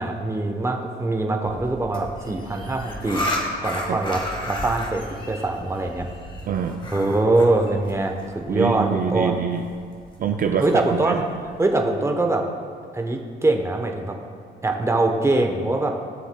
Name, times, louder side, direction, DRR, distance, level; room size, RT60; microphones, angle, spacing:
voice 1, 0.0-3.3 3.6-6.1 6.9-9.4 10.6-11.2 11.6-12.4 12.9-14.1 14.6-15.9, right 2 dB, 15° right, 3 dB, 0.9 m, -23 dB
sound 1, 1.4-11.7, left 1 dB, 25° left, 1.5 m, -34 dB
voice 2, 6.5-6.9 8.5-9.6 10.2-11.2, right 7 dB, 45° right, 4 dB, 0.5 m, -25 dB
15.0 x 7.0 x 2.2 m, 2.1 s
cardioid pair, 90°, 20 cm